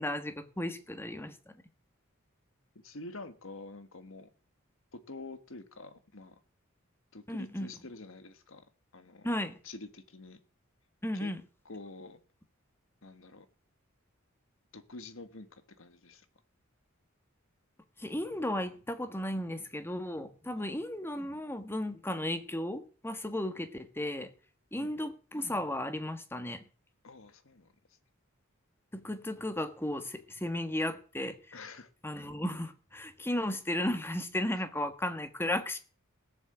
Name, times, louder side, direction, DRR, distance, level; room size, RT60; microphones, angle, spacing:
voice 1, 0.0-1.5 7.3-7.7 9.2-9.6 11.0-11.4 18.0-24.3 24.7-26.6 28.9-31.4 32.0-35.8, left 1 dB, 10° left, 9 dB, 1.5 m, -34 dB
voice 2, 2.8-4.3 4.9-6.4 7.1-9.3 9.6-10.4 11.1-11.3 11.6-12.2 13.0-13.5 14.7-16.2 20.6-20.7 24.8-24.9 27.0-27.7 31.5-31.9, left 3 dB, 70° left, 10 dB, 1.7 m, -47 dB
17.0 x 7.4 x 8.0 m, 0.40 s
head